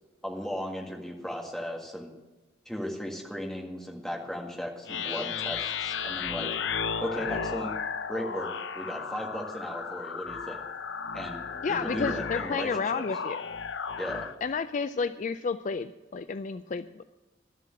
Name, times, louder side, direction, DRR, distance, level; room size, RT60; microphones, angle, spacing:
voice 1, 0.2-2.1 2.7-6.5 7.0-7.7 8.1-10.6 11.1-11.4 11.7-13.0 14.0-14.3, equal, 5° left, -1 dB, 1.8 m, -36 dB
sound 1, 4.9-14.3, left 6 dB, 75° left, 0.7 m, -34 dB
voice 2, 11.6-13.4 14.4-17.0, left 5 dB, 40° left, 11 dB, 0.3 m, -31 dB
12.5 x 7.7 x 7.4 m, 1.1 s
head